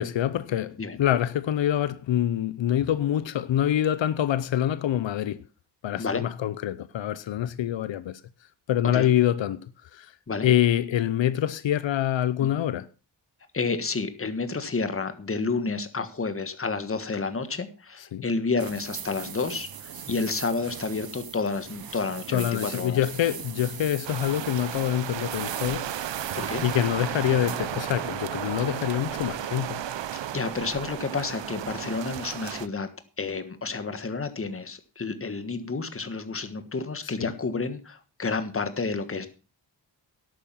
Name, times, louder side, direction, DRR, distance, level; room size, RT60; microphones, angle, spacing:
voice 1, 0.0-5.4 5.8-8.2 8.7-9.7 9.9-10.1 10.4-12.9 18.1-18.2 22.3-25.9 26.6-29.8 37.2-37.3, left 11 dB, 90° left, 0.8 m, -25 dB
voice 2, 13.5-23.0 26.3-26.6 30.1-32.9 33.2-39.3, left 4 dB, 30° left, 1.5 m, -30 dB
sound 1, 18.6-27.9, right 8 dB, 55° right, 1.0 m, -40 dB
sound 2, 24.0-32.7, right 11 dB, 75° right, 0.8 m, -34 dB
11.5 x 9.1 x 5.6 m
wide cardioid pair, 125°, 43 cm